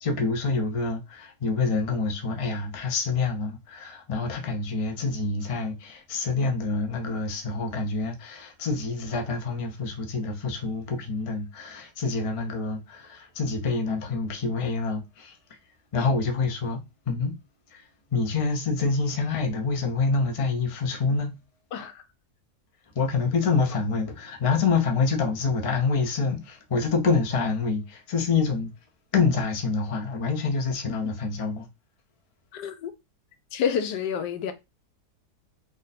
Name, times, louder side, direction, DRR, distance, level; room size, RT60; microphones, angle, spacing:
voice 1, 0.0-15.4 15.9-16.8 17.1-17.4 17.7-17.8 18.1-21.4 23.0-28.7 29.1-31.7, left 4 dB, 55° left, 0.3 m, -27 dB
voice 2, 21.7-22.0 31.0-31.2 32.5-32.9 33.5-34.5, left 7 dB, 90° left, 1.2 m, -29 dB
3.0 x 2.6 x 4.1 m
omnidirectional pair, 1.8 m